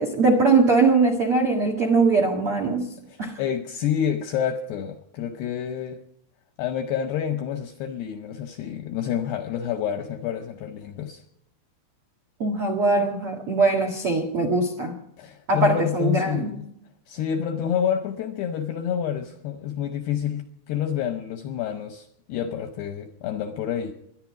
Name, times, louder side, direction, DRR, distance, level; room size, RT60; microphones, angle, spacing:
voice 1, 0.0-2.9 3.2-3.4 12.4-14.9 15.5-16.5, right 3 dB, 75° right, 1.2 m, -21 dB
voice 2, 3.1-6.0 6.6-11.2 15.2-16.7 17.1-23.9, left 9 dB, 80° left, 2.4 m, -28 dB
23.0 x 10.5 x 4.8 m
omnidirectional pair, 5.8 m